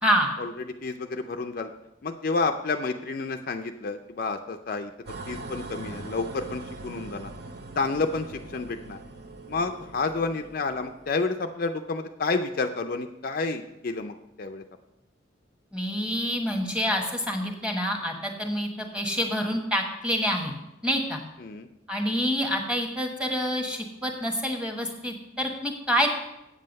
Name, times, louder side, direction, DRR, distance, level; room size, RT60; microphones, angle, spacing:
voice 1, 0.8-1.7 2.0-4.9 5.3-7.3 7.8-9.0 9.5-14.6 21.4-21.7, left 3 dB, 45° left, 6 dB, 0.4 m, -30 dB
sound 1, 5.1-11.1, right 3 dB, 55° right, 0.9 m, -41 dB
voice 2, 15.7-20.5 20.8-21.2 21.9-26.2, equal, 5° right, 2 dB, 1.1 m, -27 dB
8.3 x 7.6 x 5.2 m, 0.89 s
head